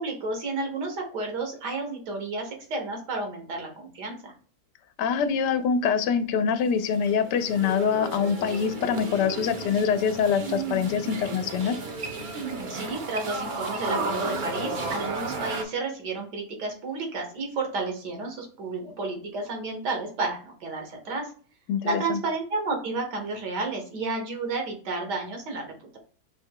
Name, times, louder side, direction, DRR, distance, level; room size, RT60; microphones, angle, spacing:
voice 1, 0.0-4.3 12.7-21.3 21.8-26.0, right 3 dB, 80° right, 2 dB, 1.8 m, -31 dB
voice 2, 5.0-11.8 21.7-22.2, left 7 dB, 85° left, 10 dB, 1.2 m, -25 dB
sound 1, 6.7-15.6, right 3 dB, 50° right, 0.5 m, -33 dB
5.1 x 2.2 x 4.7 m, 0.43 s
omnidirectional pair, 1.8 m